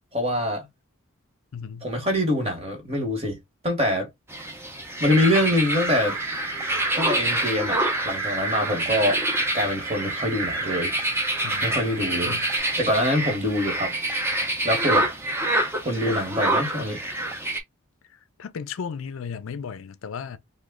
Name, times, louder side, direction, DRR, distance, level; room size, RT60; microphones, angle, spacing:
voice 1, 0.1-0.7 1.8-3.4 3.6-4.1 5.0-6.2 7.0-7.8 8.0-9.2 9.5-10.9 11.6-12.4 12.8-13.9 14.6-15.1 15.8-17.0, left 1 dB, 30° right, 1.1 m, -24 dB
voice 2, 1.5-1.9 11.4-12.5 16.1-16.3 18.4-20.4, left 6 dB, 65° left, 0.4 m, -35 dB
sound 1, 4.3-17.6, right 1 dB, 10° right, 0.5 m, -27 dB
sound 2, 5.1-12.6, right 3 dB, 75° right, 0.9 m, -32 dB
3.1 x 2.1 x 3.5 m
head